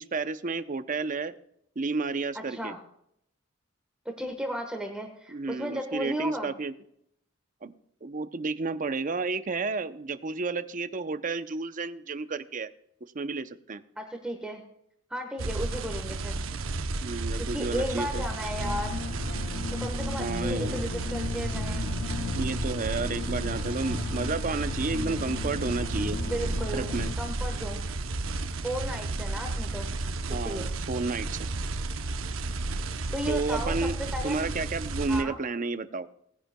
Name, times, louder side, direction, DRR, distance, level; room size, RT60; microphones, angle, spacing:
voice 1, 0.0-1.3 1.8-2.7 5.3-6.7 7.6-7.7 8.0-12.7 13.1-13.8 17.0-18.2 20.2-20.8 21.8-21.9 22.3-26.2 26.7-27.1 30.3-31.4 33.3-33.9 34.2-36.1, right 3 dB, 40° right, 12 dB, 0.6 m, -31 dB
voice 2, 4.0-6.5 14.0-14.6 15.1-16.4 17.4-19.1 19.8-21.9 26.2-27.8 28.6-29.9 30.4-30.7 33.1-34.6 35.1-35.4, equal, 5° right, 3 dB, 1.2 m, -35 dB
sound 1, 15.4-35.2, right 3 dB, 85° right, 0.7 m, -33 dB
sound 2, 18.6-27.1, left 4 dB, 55° left, 0.6 m, -36 dB
19.0 x 10.0 x 2.2 m, 0.72 s
head